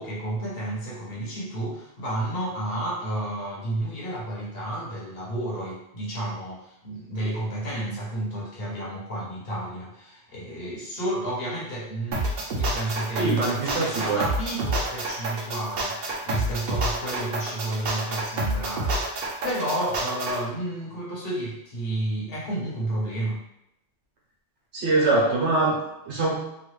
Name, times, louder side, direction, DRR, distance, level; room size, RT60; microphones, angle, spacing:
voice 1, 0.0-19.1 19.4-23.4, right 1 dB, 55° left, -6 dB, 1.2 m, -31 dB
sound 1, 12.1-20.4, right 2 dB, 60° right, 0.8 m, -28 dB
voice 2, 13.2-14.2 24.7-25.8 26.0-26.4, right 2 dB, 80° right, -5 dB, 1.2 m, -23 dB
3.0 x 2.4 x 3.1 m, 0.84 s
omnidirectional pair, 1.2 m